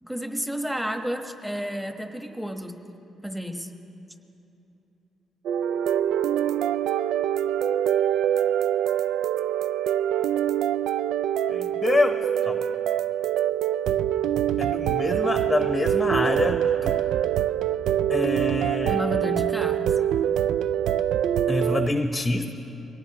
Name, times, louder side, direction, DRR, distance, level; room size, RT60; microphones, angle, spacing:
voice 1, 0.0-2.8 3.2-3.7 18.8-20.0, equal, 5° right, 5 dB, 1.3 m, -31 dB
sound 1, 5.5-21.9, right 10 dB, 80° right, 0.3 m, -24 dB
voice 2, 11.5-12.2 12.5-12.6 14.6-17.0 18.1-19.0 21.5-22.5, left 2 dB, 15° left, 6 dB, 0.9 m, -26 dB
23.0 x 18.0 x 3.0 m, 3.0 s
cardioid pair, 90°, 0 cm